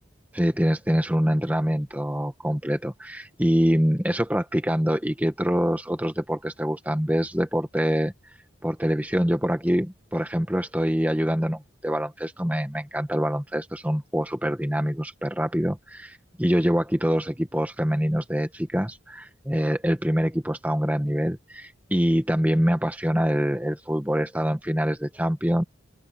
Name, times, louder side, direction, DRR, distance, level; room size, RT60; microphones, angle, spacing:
voice 1, 0.3-8.1 8.6-25.6, equal, 10° right, 1.7 m, -25 dB
open air
head